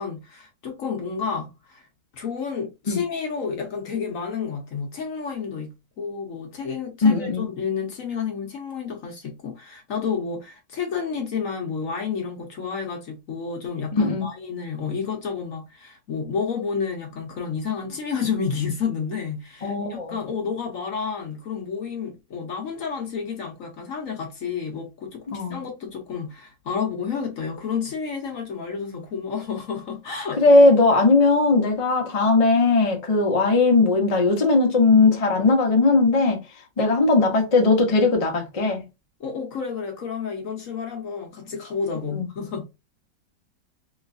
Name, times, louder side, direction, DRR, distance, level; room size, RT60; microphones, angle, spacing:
voice 1, 0.0-1.9 2.1-30.4 39.2-42.6, left 6 dB, 60° left, 1.0 m, -30 dB
voice 2, 7.0-7.5 13.9-14.2 19.6-20.2 25.3-25.6 30.3-36.4 36.8-38.8 42.1-42.3, left 3 dB, 40° left, 0.5 m, -18 dB
3.1 x 3.1 x 2.5 m
omnidirectional pair, 2.0 m